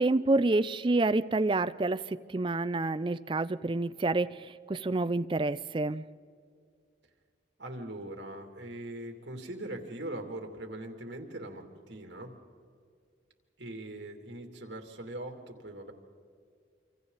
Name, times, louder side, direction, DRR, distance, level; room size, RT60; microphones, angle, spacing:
voice 1, 0.0-4.4 4.7-6.0, right 2 dB, 25° right, 13 dB, 0.4 m, -28 dB
voice 2, 7.6-12.3 13.6-15.9, right 1 dB, 65° right, 3 dB, 2.7 m, -41 dB
27.5 x 26.0 x 4.0 m, 2.2 s
head